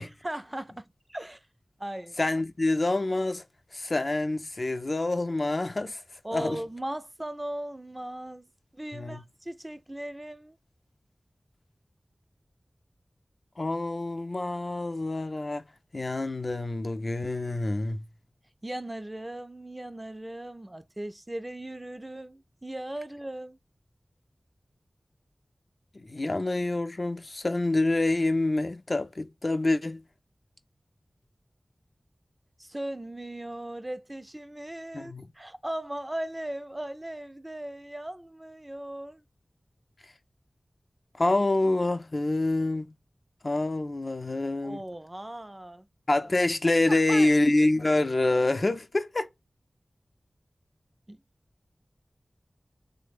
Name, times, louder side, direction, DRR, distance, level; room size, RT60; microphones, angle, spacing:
voice 1, 0.0-1.5 1.8-2.2 6.2-10.6 18.6-23.6 32.6-39.2 44.6-45.8 46.9-47.3 51.1-51.2, right 1 dB, 25° right, 0.4 m, -38 dB
voice 2, 2.2-3.4 3.7-6.0 6.3-6.6 8.9-9.2 13.6-15.6 15.9-18.0 26.1-30.0 34.9-35.2 41.2-42.9 43.4-44.8 46.1-49.3, left 2 dB, 60° left, 0.5 m, -26 dB
3.2 x 2.1 x 3.4 m
wide cardioid pair, 45°, 0 cm